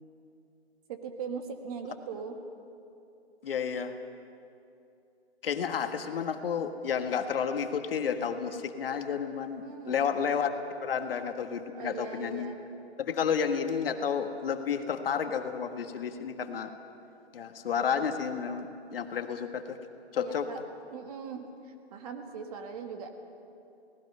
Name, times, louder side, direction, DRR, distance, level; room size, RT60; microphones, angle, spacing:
voice 1, 0.9-2.4 9.6-10.2 11.7-12.6 20.2-20.6 20.9-23.1, right 6 dB, 35° right, 5 dB, 1.8 m, -40 dB
voice 2, 3.4-3.9 5.4-10.5 10.8-12.5 13.0-16.7 17.3-18.7 18.9-19.8 20.1-20.5, left 7 dB, 60° left, 7 dB, 1.6 m, -31 dB
28.0 x 18.5 x 5.5 m, 2.7 s
hypercardioid pair, 155°, 33 cm